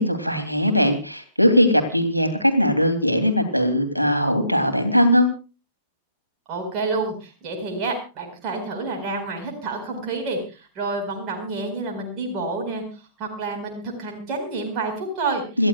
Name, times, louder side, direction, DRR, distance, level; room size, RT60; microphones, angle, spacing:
voice 1, 0.0-5.3 15.6-15.7, equal, 90° right, 7 dB, 2.9 m, -20 dB
voice 2, 6.5-15.4, right 3 dB, 35° right, 2 dB, 4.7 m, -29 dB
27.5 x 14.5 x 2.4 m, 0.33 s
figure-of-eight pair, 90°, 0 cm